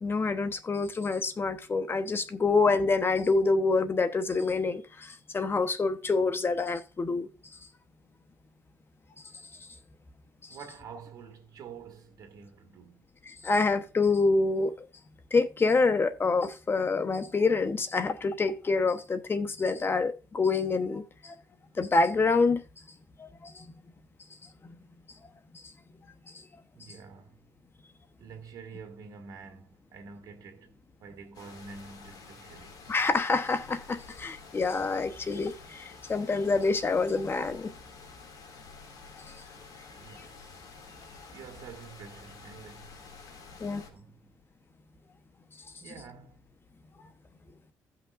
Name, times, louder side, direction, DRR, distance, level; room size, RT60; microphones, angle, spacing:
voice 1, 0.0-7.3 13.3-14.7 15.3-21.4 21.8-22.6 23.2-23.6 32.9-37.7 43.6-43.8, left 3 dB, 35° left, 1.0 m, -27 dB
voice 2, 10.5-13.1 26.7-27.4 28.2-32.8 39.9-40.5 41.3-43.1 43.8-44.3 45.8-46.4, right 5 dB, 65° right, 2.0 m, -48 dB
sound 1, 31.3-43.9, left 4 dB, 65° left, 2.5 m, -50 dB
15.5 x 5.8 x 2.5 m
supercardioid pair, 75°, 7 cm